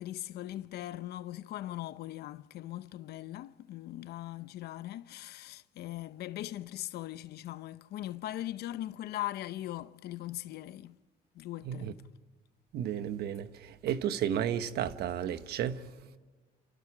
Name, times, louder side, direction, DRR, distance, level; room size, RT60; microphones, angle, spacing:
voice 1, 0.0-11.0 11.3-12.0, left 14 dB, 70° left, 0.8 m, -40 dB
voice 2, 12.7-15.9, right 9 dB, 70° right, 1.3 m, -33 dB
30.0 x 28.0 x 5.0 m
cardioid pair, 110°, 17 cm